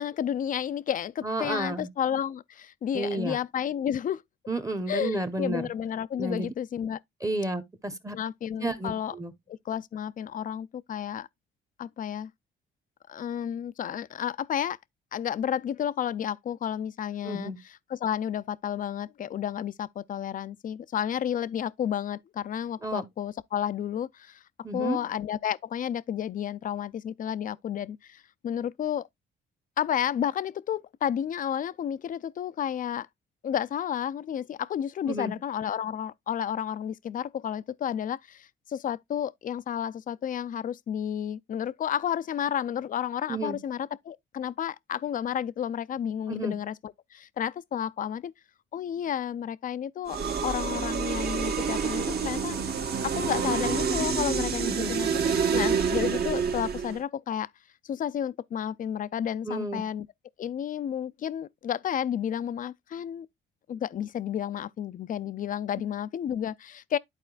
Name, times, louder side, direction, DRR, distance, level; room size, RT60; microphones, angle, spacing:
voice 1, 0.0-4.2 4.9-7.0 8.1-9.1 9.5-11.3 11.8-12.3 13.1-14.8 15.1-17.5 17.9-24.4 24.7-29.1 29.8-33.1 33.4-48.3 48.7-52.6 53.0-57.5 57.8-60.1 60.4-63.3 63.7-67.0, left 9 dB, 45° left, 0.4 m, -31 dB
voice 2, 1.2-1.9 2.9-3.4 4.5-5.6 6.2-6.5 7.2-8.2 8.6-9.3 17.2-17.6 22.8-23.0 24.6-25.0 35.1-35.3 43.3-43.6 46.3-46.6 54.6-54.9 59.5-59.8, right 2 dB, 15° right, 0.9 m, -31 dB
sound 1, 50.1-57.0, right 6 dB, 50° right, 1.3 m, -28 dB
11.5 x 4.2 x 2.3 m
cardioid pair, 90°, 20 cm